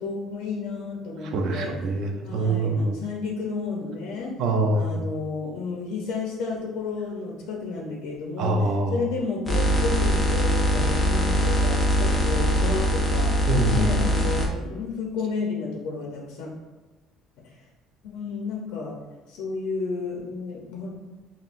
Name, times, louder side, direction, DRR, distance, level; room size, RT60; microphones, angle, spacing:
voice 1, 0.0-1.7 2.2-4.3 4.7-8.6 8.9-13.3 13.7-16.5 18.0-18.9 19.3-20.9, left 4 dB, 85° left, -1 dB, 0.7 m, -32 dB
voice 2, 1.2-3.0 4.4-5.1 8.4-9.0 13.5-13.9, right 2 dB, 55° right, 3 dB, 0.5 m, -24 dB
sound 1, 9.5-14.5, equal, 15° left, 0.4 m, -22 dB
5.5 x 2.1 x 2.5 m, 1.2 s
cardioid pair, 165°, 0 cm